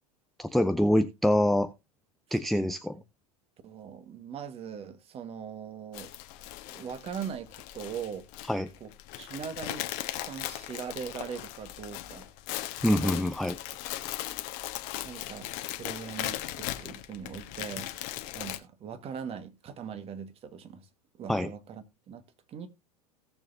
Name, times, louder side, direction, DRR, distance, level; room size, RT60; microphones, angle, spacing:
voice 1, 0.4-1.7 2.3-3.0 8.5-8.7 12.8-13.6 21.3-21.5, left 1 dB, ahead, 0.5 m, -25 dB
voice 2, 3.6-6.1 6.7-8.2 8.8-8.9 9.2-12.3 15.0-15.5 15.8-17.9 18.3-20.9 21.2-22.2 22.5-22.7, right 7 dB, 30° right, 1.7 m, -40 dB
sound 1, 5.9-18.6, left 14 dB, 45° left, 1.3 m, -38 dB
17.5 x 7.0 x 2.7 m
figure-of-eight pair, 85°, 20 cm